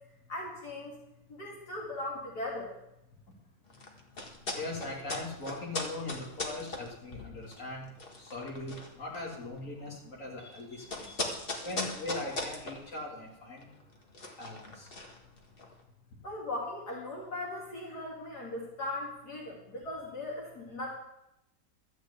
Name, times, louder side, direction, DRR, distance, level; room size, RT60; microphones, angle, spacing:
voice 1, 0.3-1.0 1.3-2.7 16.2-21.0, left 2 dB, 75° left, -4 dB, 3.3 m, -38 dB
sound 1, 3.7-15.8, left 2 dB, 35° left, 1.8 m, -40 dB
voice 2, 4.5-7.9 8.2-13.7 14.4-14.9, left 2 dB, 50° left, -4 dB, 3.5 m, -40 dB
13.0 x 6.3 x 8.3 m, 0.86 s
omnidirectional pair, 1.7 m